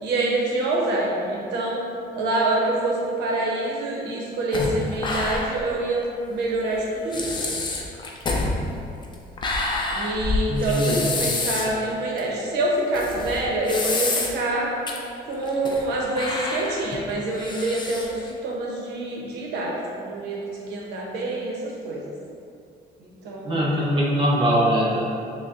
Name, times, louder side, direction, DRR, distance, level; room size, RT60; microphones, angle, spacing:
voice 1, 0.0-1.8 2.1-6.0 6.3-7.6 9.9-14.7 15.2-22.1 23.0-23.7, right 2 dB, 85° right, -2 dB, 0.8 m, -26 dB
sound 1, 4.5-5.7 6.0-6.1 6.7-6.8 7.1-11.8 12.2-12.3 12.9-14.5 14.9-15.0 15.4-15.9 16.2-18.3, left 2 dB, 25° left, 0.5 m, -27 dB
voice 2, 10.5-11.1 23.4-25.0, equal, 30° right, -4 dB, 0.8 m, -22 dB
6.1 x 2.1 x 2.5 m, 2.4 s
cardioid pair, 110°, 17 cm